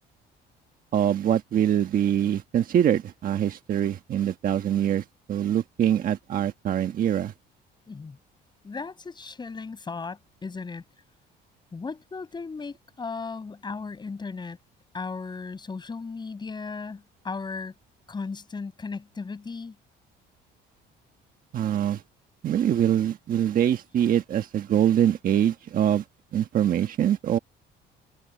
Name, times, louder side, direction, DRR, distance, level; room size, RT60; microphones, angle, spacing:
voice 1, 0.9-7.3 21.5-22.0 22.4-26.0 26.3-27.4, right 10 dB, 50° right, 1.3 m, -24 dB
voice 2, 7.9-8.2 8.6-10.8 11.7-14.6 14.9-17.7 18.1-19.8, left 4 dB, 25° left, 6.0 m, -36 dB
cardioid pair, 120°, 19 cm